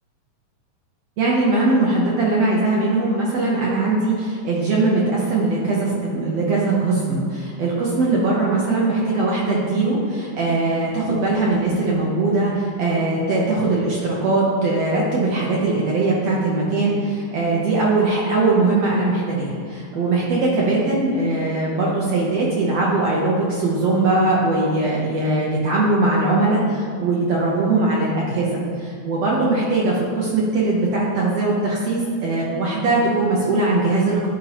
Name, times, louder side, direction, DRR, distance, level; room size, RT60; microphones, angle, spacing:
voice 1, 1.2-26.6 27.0-34.3, right 2 dB, 70° right, -5 dB, 1.6 m, -20 dB
10.5 x 4.4 x 2.9 m, 2.1 s
omnidirectional pair, 3.6 m